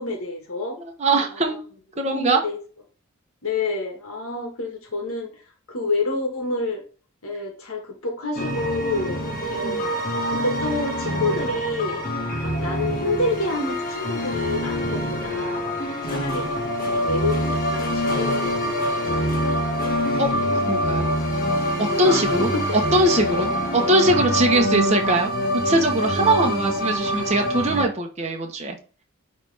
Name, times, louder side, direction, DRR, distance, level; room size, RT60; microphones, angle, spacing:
voice 1, 0.0-0.8 1.3-1.6 2.0-2.6 3.4-5.4 5.7-6.8 7.2-9.2 9.5-10.0 10.3-12.0 12.4-15.7 16.0-16.4 16.8-19.6 22.0-22.6 23.3-23.4 26.2-26.8, left 2 dB, 75° left, 2 dB, 1.5 m, -28 dB
voice 2, 0.8-1.6 2.0-2.4 9.6-9.8 20.2-20.3 20.7-21.1 21.8-25.3 25.6-28.8, right 1 dB, 30° right, 1 dB, 1.0 m, -21 dB
sound 1, 8.3-27.8, equal, 40° left, 1.6 m, -25 dB
9.7 x 3.3 x 3.3 m, 0.38 s
head